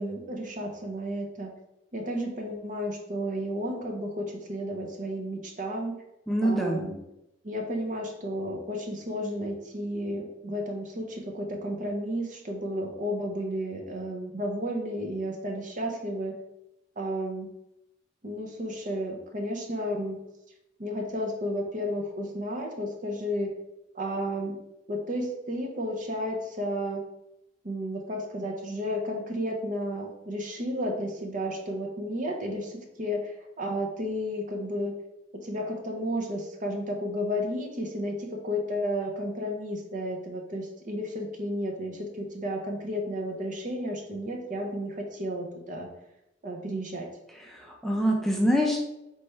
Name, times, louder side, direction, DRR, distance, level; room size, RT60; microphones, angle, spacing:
voice 1, 0.0-1.5 1.9-6.0 6.4-7.0 7.4-16.4 17.0-17.5 18.2-20.2 20.8-23.5 23.9-24.6 24.9-27.1 27.6-35.0 35.3-45.9 46.4-47.1, equal, 45° right, 2 dB, 0.7 m, -32 dB
voice 2, 6.3-6.8 47.5-48.8, equal, ahead, -1 dB, 0.4 m, -25 dB
4.1 x 3.4 x 3.3 m, 0.87 s
head